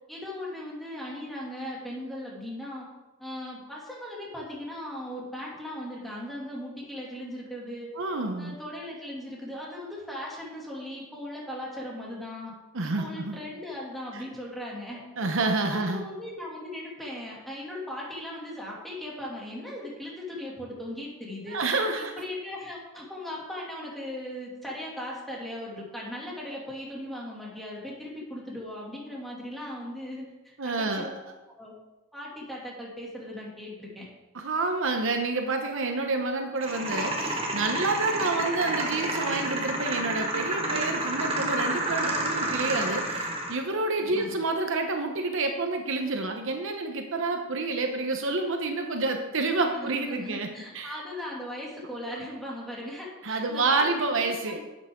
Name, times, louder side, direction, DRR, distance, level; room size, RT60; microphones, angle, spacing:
voice 1, 0.1-2.9 3.2-7.9 8.4-12.5 12.8-15.0 15.7-21.6 22.0-31.1 31.6-31.7 32.1-34.1 44.0-44.3 49.7-54.6, left 1 dB, ahead, -5 dB, 2.5 m, -38 dB
voice 2, 8.0-8.6 12.7-13.4 14.1-14.2 15.2-16.0 21.5-22.1 30.6-31.2 34.3-50.5 50.7-51.0 53.2-54.6, right 3 dB, 60° right, 4 dB, 0.9 m, -28 dB
sound 1, 36.6-43.6, right 1 dB, 25° right, 1.5 m, -29 dB
11.0 x 8.3 x 3.7 m, 1.1 s
head